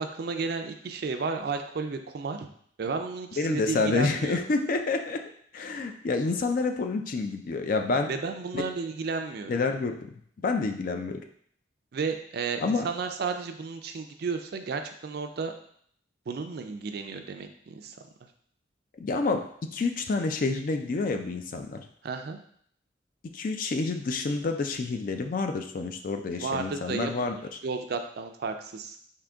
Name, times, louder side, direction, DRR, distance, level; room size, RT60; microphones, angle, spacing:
voice 1, 0.0-2.5 2.8-4.4 8.1-9.5 11.9-15.5 16.3-18.0 22.0-22.4 26.4-27.3 27.6-29.0, right 4 dB, 55° right, 6 dB, 0.4 m, -33 dB
voice 2, 3.4-5.2 5.5-8.1 8.5-8.6 9.5-10.1 10.4-11.2 12.6-12.9 19.0-19.4 19.7-21.8 23.3-27.4, left 3 dB, 45° left, 6 dB, 0.4 m, -28 dB
3.8 x 2.7 x 3.4 m, 0.63 s
head